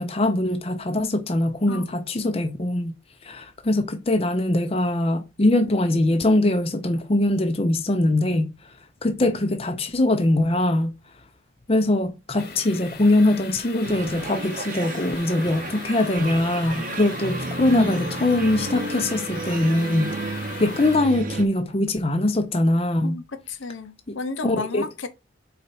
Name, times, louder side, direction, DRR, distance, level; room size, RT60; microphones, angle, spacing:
voice 1, 0.0-2.9 3.2-8.5 9.0-10.9 11.7-23.2 24.1-24.2 24.4-24.8, left 1 dB, 30° left, 0.6 m, -22 dB
sound 1, 12.4-21.0, left 4 dB, 55° left, 1.1 m, -38 dB
sound 2, 13.8-21.4, right 2 dB, 45° right, 0.7 m, -32 dB
voice 2, 23.0-25.1, left 4 dB, 85° left, 0.9 m, -33 dB
4.2 x 4.2 x 5.4 m
head